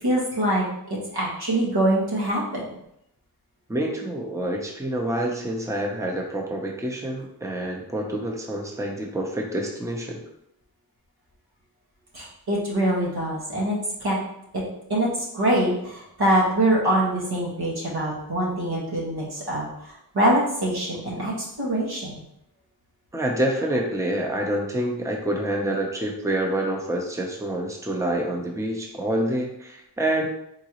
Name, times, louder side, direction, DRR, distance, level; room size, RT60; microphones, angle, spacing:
voice 1, 0.0-2.6 12.1-14.2 14.5-14.6 14.9-15.1 15.3-19.9 20.1-21.3 21.6-22.2, right 1 dB, 85° right, -5 dB, 1.6 m, -24 dB
voice 2, 3.7-10.2 23.1-30.3, right 1 dB, 10° right, 0 dB, 0.7 m, -27 dB
3.9 x 3.7 x 3.0 m, 0.76 s
wide cardioid pair, 75°, 37 cm